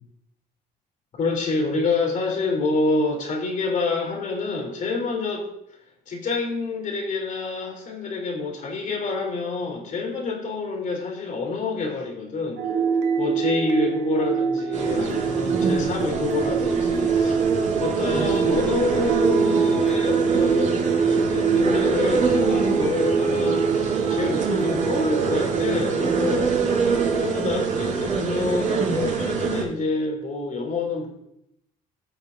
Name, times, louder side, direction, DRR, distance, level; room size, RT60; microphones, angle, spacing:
voice 1, 1.2-5.4 6.1-12.6 13.2-17.4 17.8-20.8 21.1-26.5 27.1-31.1, left 3 dB, 50° left, 1 dB, 3.3 m, -27 dB
sound 1, 12.6-27.5, right 6 dB, 80° right, 1.3 m, -24 dB
sound 2, 14.7-29.6, right 5 dB, 45° right, 4.4 m, -25 dB
18.0 x 6.9 x 2.7 m, 0.78 s
cardioid pair, 110°, 17 cm